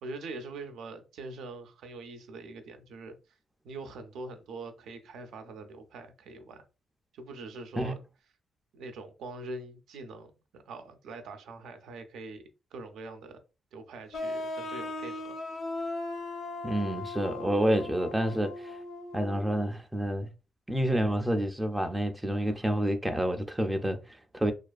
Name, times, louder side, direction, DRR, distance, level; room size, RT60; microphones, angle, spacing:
voice 1, 0.0-3.2 3.6-6.7 7.1-8.0 8.7-12.4 12.7-13.4 13.7-15.3, right 3 dB, 90° right, 0.4 m, -43 dB
sound 1, 14.1-19.6, left 2 dB, 55° left, 0.5 m, -38 dB
voice 2, 16.6-18.8 19.1-20.3 20.7-24.5, right 1 dB, 10° right, 0.3 m, -29 dB
2.4 x 2.3 x 2.3 m
cardioid pair, 105°, 0 cm